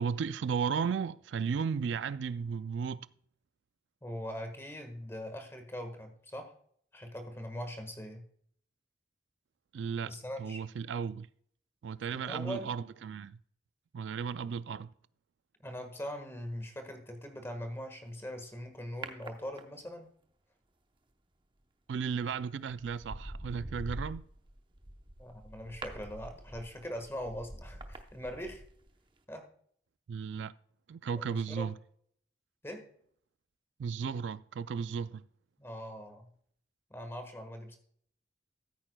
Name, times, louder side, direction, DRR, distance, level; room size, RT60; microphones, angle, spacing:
voice 1, 0.0-3.0 9.7-11.3 11.8-13.4 13.9-14.9 21.9-24.2 30.1-30.5 30.9-31.8 33.8-35.2, right 6 dB, 75° right, 0.3 m, -35 dB
voice 2, 4.0-6.5 6.9-8.2 10.0-10.6 12.1-12.7 15.6-20.1 25.2-28.6 29.3-29.5 31.2-31.7 32.6-32.9 35.6-36.3 36.9-37.8, equal, 15° left, 1.4 m, -41 dB
sound 1, 19.0-20.1 21.9-22.2 22.7-28.9 29.2-29.3, right 1 dB, 25° right, 0.8 m, -45 dB
14.5 x 8.7 x 2.2 m
head